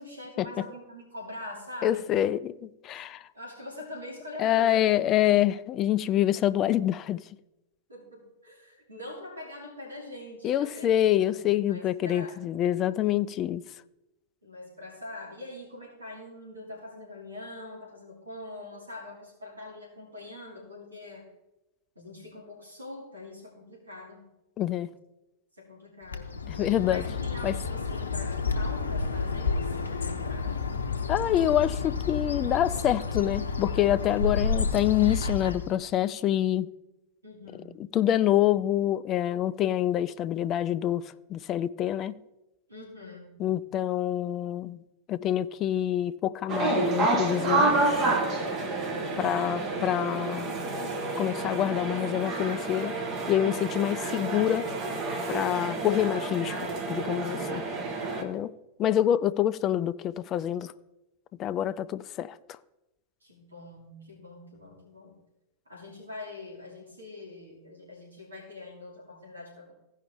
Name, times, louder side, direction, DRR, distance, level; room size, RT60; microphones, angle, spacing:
voice 1, 0.0-2.1 3.3-4.8 7.9-12.4 14.4-21.3 21.9-24.3 25.6-26.4 26.8-30.6 37.2-37.9 42.7-43.4 57.4-58.2 63.2-65.2 65.7-69.7, left 2 dB, 80° right, 2.6 m, -44 dB
voice 2, 1.8-3.2 4.4-7.2 10.4-13.6 24.6-24.9 26.5-27.0 27.4-27.5 31.1-36.7 37.9-41.0 41.3-42.1 43.4-44.8 45.1-48.2 49.2-50.5 51.2-52.9 53.3-54.7 55.3-57.6 58.2-58.5 58.8-60.7 61.4-62.4, left 12 dB, 35° left, 0.4 m, -26 dB
Bird, 26.1-35.8, left 4 dB, 75° left, 0.7 m, -30 dB
sound 1, 46.5-58.2, right 3 dB, 30° right, 1.4 m, -29 dB
15.5 x 5.5 x 3.5 m
figure-of-eight pair, 90°, 0 cm